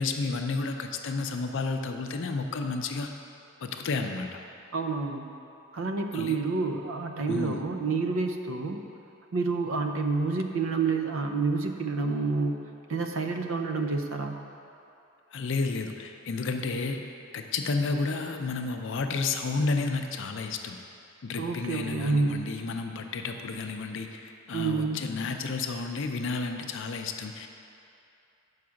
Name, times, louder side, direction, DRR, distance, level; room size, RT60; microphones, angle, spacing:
voice 1, 0.0-3.1 3.6-4.4 6.1-6.4 7.3-7.6 15.3-17.0 17.3-20.8 21.2-27.5, left 3 dB, 60° left, 5 dB, 0.5 m, -31 dB
voice 2, 4.7-5.3 5.7-8.8 9.3-14.4 21.4-22.5 24.5-25.1, right 4 dB, 65° right, 4 dB, 0.5 m, -29 dB
5.8 x 4.7 x 6.3 m, 2.7 s
head